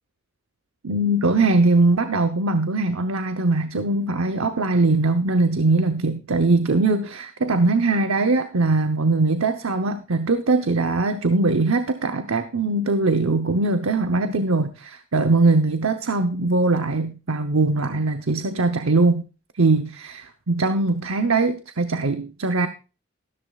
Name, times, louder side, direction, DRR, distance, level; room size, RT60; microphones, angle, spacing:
voice 1, 0.8-19.2 19.6-22.7, right 3 dB, 90° right, 0.9 m, -21 dB
14.0 x 13.0 x 2.4 m
head